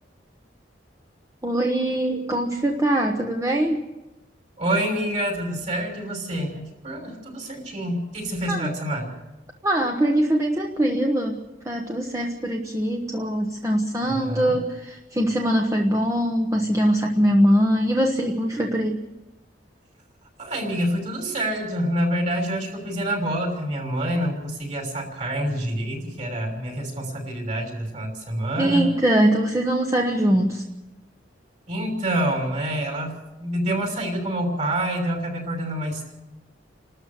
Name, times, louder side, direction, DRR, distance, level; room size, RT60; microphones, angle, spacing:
voice 1, 1.4-3.8 8.5-8.7 9.6-11.4 11.6-19.0 28.6-30.6, right 1 dB, 15° right, 1 dB, 1.1 m, -22 dB
voice 2, 4.6-9.1 14.0-14.5 20.4-28.9 31.7-33.1 33.4-36.1, right 1 dB, 40° right, 2 dB, 6.0 m, -27 dB
29.5 x 13.0 x 6.8 m, 1.1 s
head